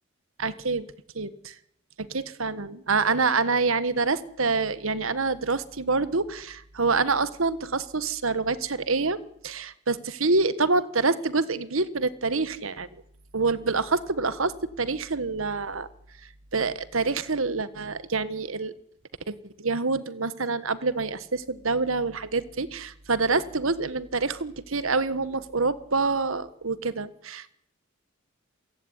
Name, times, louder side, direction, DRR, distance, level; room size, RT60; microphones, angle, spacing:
voice 1, 0.4-0.9 1.1-1.5 2.0-13.0 13.3-15.9 16.5-18.7 19.3-27.5, right 4 dB, 70° right, 15 dB, 1.4 m, -26 dB
28.0 x 16.0 x 9.9 m, 0.74 s
head